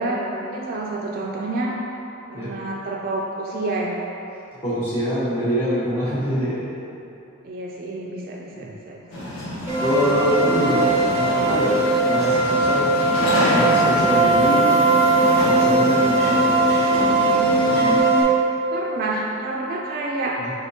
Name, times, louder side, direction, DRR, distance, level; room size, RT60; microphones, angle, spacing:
voice 1, 0.0-1.8 2.3-4.0 7.4-9.3 17.0-17.9 18.7-20.4, right 2 dB, 45° right, -2 dB, 0.3 m, -29 dB
voice 2, 4.6-6.6 8.6-8.7 9.8-14.7 15.4-16.5 20.4-20.5, equal, 30° left, -13 dB, 0.9 m, -25 dB
sound 1, 9.1-18.0, left 1 dB, 90° left, 0.9 m, -28 dB
sound 2, 9.7-18.2, right 2 dB, 10° right, 0.7 m, -19 dB
5.4 x 3.4 x 2.7 m, 2.9 s
head